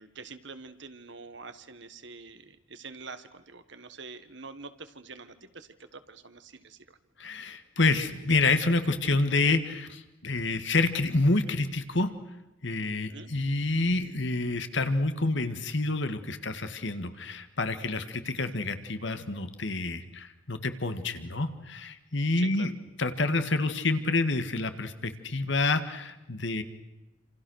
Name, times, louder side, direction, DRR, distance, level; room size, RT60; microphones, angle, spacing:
voice 1, 0.0-7.0 13.1-13.3 22.4-22.7, right 4 dB, 60° right, 11 dB, 1.6 m, -46 dB
voice 2, 7.2-12.1 12.6-22.7 23.0-26.6, left 3 dB, 60° left, 9 dB, 1.9 m, -28 dB
28.0 x 27.5 x 6.5 m, 0.98 s
head